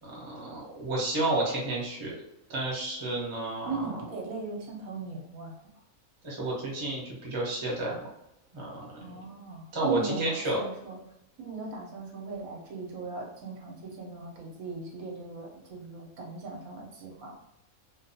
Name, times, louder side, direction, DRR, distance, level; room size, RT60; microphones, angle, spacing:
voice 1, 0.0-2.1 2.5-4.0 6.2-8.0 8.5-9.1 9.7-10.6, right 2 dB, 30° right, -4 dB, 0.6 m, -31 dB
voice 2, 3.7-5.6 9.0-11.0 11.4-17.3, right 4 dB, 75° right, -1 dB, 1.1 m, -38 dB
2.6 x 2.2 x 2.6 m, 0.85 s
omnidirectional pair, 1.5 m